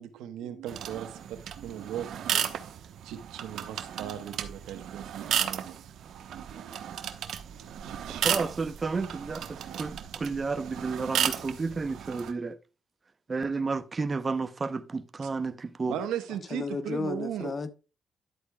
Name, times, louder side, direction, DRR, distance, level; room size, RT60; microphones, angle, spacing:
voice 1, 0.0-6.9 7.5-8.4 9.6-9.7 10.3-10.4 15.9-17.5, right 10 dB, 90° right, 1.1 m, -39 dB
sound 1, 0.7-12.3, right 9 dB, 70° right, 1.0 m, -34 dB
voice 2, 8.2-12.6 13.3-16.0, right 4 dB, 30° right, 0.8 m, -32 dB
voice 3, 16.5-17.7, left 4 dB, 35° left, 1.0 m, -33 dB
11.0 x 8.1 x 2.3 m
cardioid pair, 90°, 0 cm